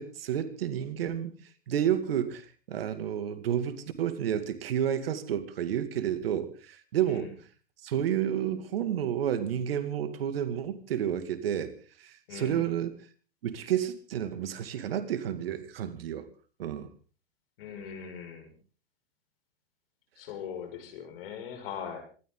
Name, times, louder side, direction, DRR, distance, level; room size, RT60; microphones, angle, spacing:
voice 1, 0.0-1.4 1.7-7.3 7.8-11.7 12.0-13.0 13.4-16.2 16.6-16.9, right 10 dB, 65° right, 11 dB, 2.5 m, -30 dB
voice 2, 12.3-12.6 17.6-18.5 20.2-22.0, left 7 dB, 60° left, 5 dB, 6.6 m, -40 dB
26.5 x 13.5 x 3.9 m, 0.39 s
hypercardioid pair, 95°, 31 cm